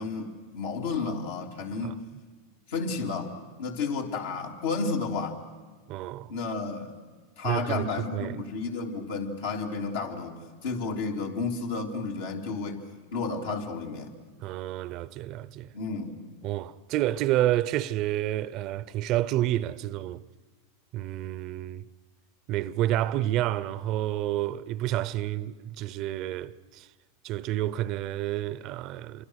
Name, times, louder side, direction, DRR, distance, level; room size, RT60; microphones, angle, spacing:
voice 1, 0.0-2.0 2.7-5.4 6.3-6.9 7.4-12.8 13.1-14.1 15.7-16.2, left 4 dB, 75° left, 3.4 m, -32 dB
voice 2, 5.9-6.3 7.4-8.4 14.4-15.7 16.4-20.2 20.9-21.8 22.5-26.9 27.2-29.3, right 14 dB, 50° right, 0.7 m, -29 dB
27.0 x 24.5 x 6.5 m
hypercardioid pair, 105°, 0 cm